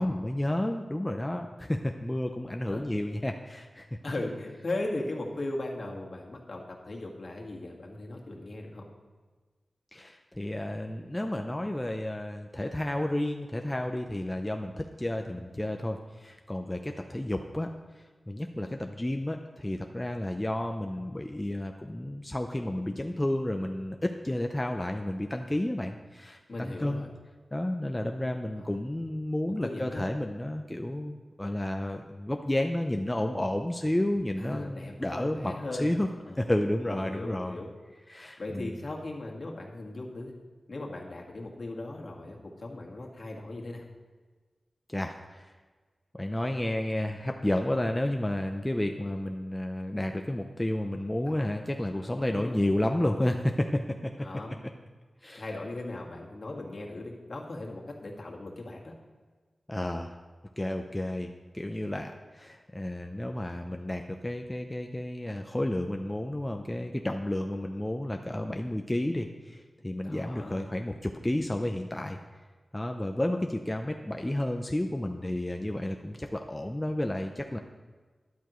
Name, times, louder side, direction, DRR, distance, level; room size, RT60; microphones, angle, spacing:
voice 1, 0.0-4.0 9.9-17.7 18.0-27.1 27.5-35.5 35.8-36.1 36.4-37.6 38.1-38.7 44.9-45.5 46.1-54.1 55.2-55.4 59.7-60.1 60.6-72.2 72.7-77.6, left 1 dB, 15° left, 4 dB, 0.5 m, -31 dB
voice 2, 4.0-8.8 26.5-27.1 28.6-28.7 29.6-30.1 34.4-35.9 36.3-36.4 36.9-37.7 38.4-40.3 40.7-43.8 51.2-51.5 52.3-52.6 54.2-54.6 55.3-58.9 70.0-70.6, left 2 dB, 55° left, 0 dB, 1.8 m, -38 dB
13.0 x 11.0 x 3.1 m, 1.4 s
wide cardioid pair, 110°, 0 cm